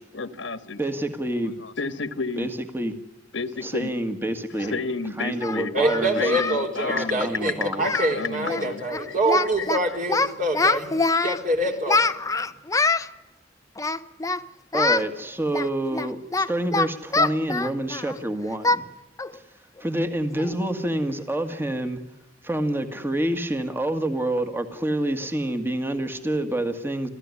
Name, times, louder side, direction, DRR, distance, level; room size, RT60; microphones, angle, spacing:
voice 1, 0.1-0.8 1.4-2.5 3.3-3.9 4.6-5.7 6.1-7.2 7.6-10.0, left 4 dB, 75° left, 11 dB, 1.6 m, -31 dB
voice 2, 0.8-1.5 2.4-2.9 3.6-4.7 5.2-6.2 6.8-7.8 14.7-18.9 19.3-19.4 19.8-22.0 22.4-27.1, right 1 dB, 10° right, 8 dB, 1.9 m, -27 dB
Singing, 4.6-4.7 5.4-6.6 6.9-7.1 7.4-7.5 7.8-8.2 8.4-8.6 8.9-9.8 10.1-11.4 11.9-13.1 13.8-14.4 14.7-15.1 15.5-18.2 18.6-18.8 19.2-19.4 19.8-19.9 20.4-20.6, left 3 dB, 20° left, 0.8 m, -24 dB
voice 3, 5.7-12.0, right 1 dB, 45° right, 3 dB, 4.2 m, -25 dB
27.5 x 16.0 x 9.8 m, 1.0 s
head